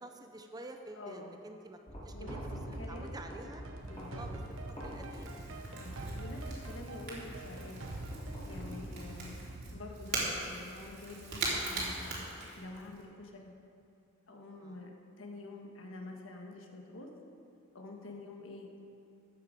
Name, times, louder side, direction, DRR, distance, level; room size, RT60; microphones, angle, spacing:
voice 1, 0.0-1.8 2.0-3.6 4.2-4.3 4.8-5.9 9.2-9.3 14.6-14.8, right 2 dB, 20° right, 5 dB, 0.7 m, -49 dB
voice 2, 0.9-1.3 2.1-2.4 2.7-3.2 3.8-4.2 5.8-7.9 8.4-9.3 9.7-12.2 12.5-13.5 14.3-14.9 15.2-17.1 17.7-18.7, left 2 dB, 70° left, 1 dB, 1.5 m, -47 dB
sound 1, 1.9-9.1, equal, 30° left, 3.2 m, -48 dB
sound 2, 2.3-11.1, right 1 dB, 75° right, 1.1 m, -44 dB
Crackle / Crack, 3.5-13.0, right 2 dB, 55° right, 3.0 m, -41 dB
13.5 x 8.7 x 5.1 m, 2.5 s
head